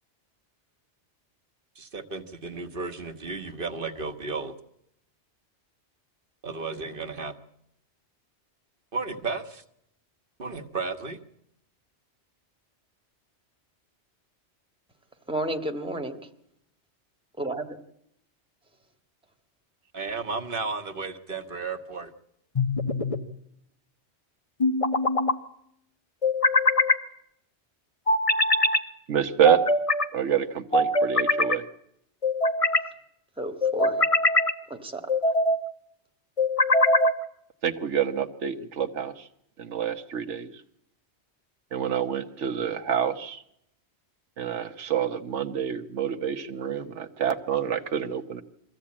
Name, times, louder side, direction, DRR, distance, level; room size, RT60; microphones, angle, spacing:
voice 1, 1.7-4.5 6.4-7.3 8.9-9.6 10.4-11.2 19.9-22.1, right 4 dB, 50° right, 8 dB, 1.5 m, -33 dB
voice 2, 15.3-16.2 17.4-17.6 33.4-34.1 34.7-35.0, right 1 dB, 5° right, 5 dB, 1.6 m, -31 dB
sound 1, 22.6-23.2 24.6-25.4 26.2-27.0 28.1-28.8 29.4-30.1 30.7-31.6 32.2-32.9 33.6-34.5 35.1-35.6 36.4-37.2, left 2 dB, 30° left, 1.1 m, -22 dB
voice 3, 29.1-29.6 30.1-31.6 37.6-39.3 39.6-40.5 41.7-43.4 44.4-48.4, right 9 dB, 85° right, 7 dB, 1.4 m, -27 dB
23.0 x 15.0 x 8.6 m, 0.78 s
omnidirectional pair, 1.2 m